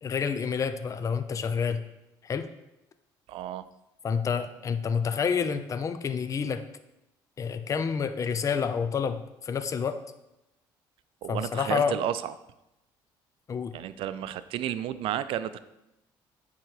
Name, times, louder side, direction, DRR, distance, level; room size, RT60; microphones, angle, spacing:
voice 1, 0.0-1.8 2.2-2.5 4.0-6.6 7.4-10.0 11.3-12.0 13.5-13.7, left 6 dB, 35° left, 10 dB, 0.5 m, -28 dB
voice 2, 3.3-3.6 11.2-12.3 13.7-15.6, right 11 dB, 70° right, 14 dB, 0.4 m, -32 dB
8.9 x 3.7 x 4.8 m, 0.92 s
cardioid pair, 95°, 9 cm